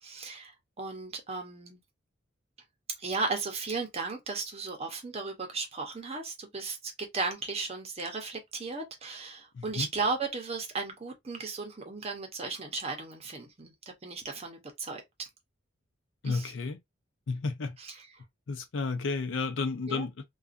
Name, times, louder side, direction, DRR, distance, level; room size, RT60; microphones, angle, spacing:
voice 1, 0.0-1.8 3.0-13.7 14.0-15.3 16.2-16.5 17.8-18.1 19.9-20.0, right 4 dB, 30° right, 0.7 m, -35 dB
voice 2, 9.5-9.9 16.2-16.8 17.3-17.8 18.5-20.2, left 4 dB, 70° left, 0.5 m, -32 dB
2.6 x 2.3 x 2.4 m
head